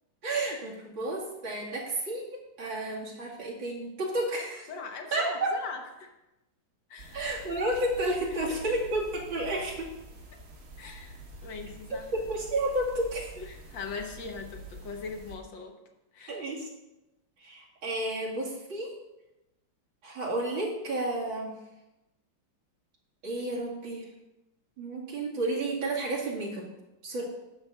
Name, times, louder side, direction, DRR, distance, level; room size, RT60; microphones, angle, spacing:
voice 1, 0.2-4.7 5.1-5.5 7.1-9.0 9.3-9.9 11.9-13.3 16.3-16.7 17.4-18.9 20.0-21.5 23.2-24.1 24.8-26.6 27.0-27.2, right 1 dB, 80° right, -5 dB, 3.2 m, -31 dB
voice 2, 4.7-6.1 6.9-7.2 8.4-8.8 10.8-12.1 13.4-15.8 16.1-16.4, left 4 dB, 70° left, 3 dB, 1.9 m, -40 dB
sound 1, 7.0-15.4, right 2 dB, 50° right, 1.7 m, -47 dB
10.5 x 4.1 x 7.0 m, 0.96 s
omnidirectional pair, 2.1 m